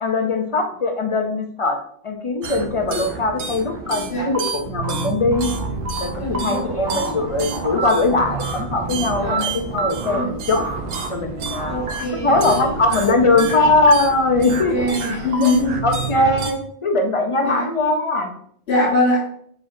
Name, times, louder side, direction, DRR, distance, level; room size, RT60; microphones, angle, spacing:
voice 1, 0.0-1.8 2.0-5.5 6.0-10.7 11.1-14.8 15.4-15.5 15.8-18.3, left 2 dB, 40° left, 4 dB, 0.5 m, -20 dB
sound 1, 2.4-16.5, right 4 dB, 70° right, 0.9 m, -28 dB
voice 2, 6.2-6.7 9.2-9.5 10.0-10.3 11.7-12.7 13.5-13.6 14.5-15.8 17.4-17.6 18.7-19.2, left 2 dB, 80° left, -8 dB, 1.5 m, -22 dB
4.7 x 4.5 x 2.5 m, 0.63 s
omnidirectional pair, 1.0 m